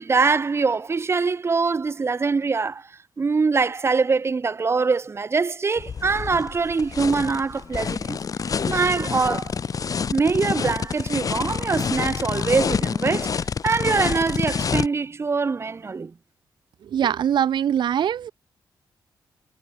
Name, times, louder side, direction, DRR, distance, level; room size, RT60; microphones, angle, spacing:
voice 1, 0.0-2.9 3.2-8.2 8.6-9.6 10.1-16.1, right 4 dB, 35° right, 1.5 m, -23 dB
sound 1, 5.8-14.9, left 6 dB, 45° left, 3.6 m, -27 dB
voice 2, 16.8-18.3, right 9 dB, 75° right, 1.0 m, -22 dB
wide cardioid pair, 120°, 8 cm